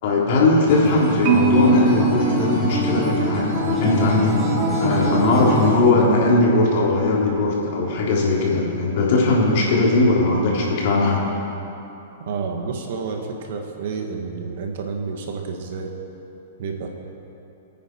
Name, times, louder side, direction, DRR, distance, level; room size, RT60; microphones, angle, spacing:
voice 1, 0.0-4.3 4.8-11.2, left 2 dB, 55° left, -4 dB, 3.7 m, -19 dB
Acoustic guitar, 0.7-5.8, equal, 20° right, 3.9 m, -24 dB
Marimba xylophone, 1.2-3.4, right 4 dB, 35° right, 1.9 m, -22 dB
voice 2, 12.2-15.9 16.6-16.9, right 5 dB, 60° right, 3 dB, 1.9 m, -29 dB
24.0 x 9.4 x 4.8 m, 2.9 s
hypercardioid pair, 150°, 0 cm